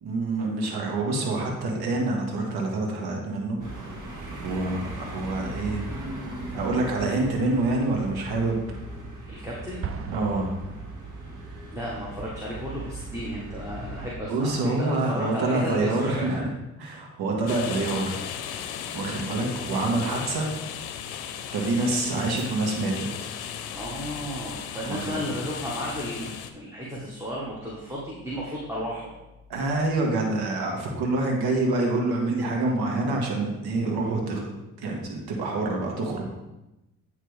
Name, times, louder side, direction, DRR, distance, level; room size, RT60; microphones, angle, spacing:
voice 1, 0.0-3.6 4.4-5.9 6.5-8.6 10.1-10.6 14.3-16.5 16.8-18.2 18.9-20.5 21.5-23.3 24.8-25.2 29.5-34.4 34.8-36.3, right 2 dB, 70° right, 0 dB, 1.6 m, -26 dB
sound 1, 3.6-14.1, right 1 dB, 50° right, 1.8 m, -38 dB
voice 2, 9.3-9.8 11.7-16.4 23.7-29.1, equal, 5° right, -5 dB, 1.5 m, -34 dB
Explosion, 9.8-11.6, right 6 dB, 35° right, 0.6 m, -38 dB
sound 2, 17.5-26.5, left 8 dB, 75° left, 0.6 m, -36 dB
9.2 x 3.3 x 3.4 m, 0.95 s
supercardioid pair, 55°, 39 cm